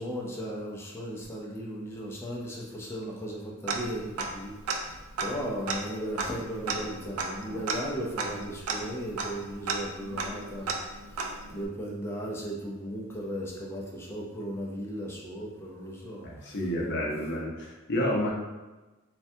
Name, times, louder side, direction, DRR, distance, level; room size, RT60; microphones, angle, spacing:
voice 1, 0.0-16.6, equal, 10° left, -3 dB, 0.5 m, -36 dB
Tick-tock, 3.7-4.4 4.7-4.8 5.1-11.7, right 4 dB, 90° right, 0.4 m, -34 dB
voice 2, 16.2-18.3, equal, 55° left, -2 dB, 0.6 m, -30 dB
3.3 x 2.2 x 2.7 m, 1.1 s
head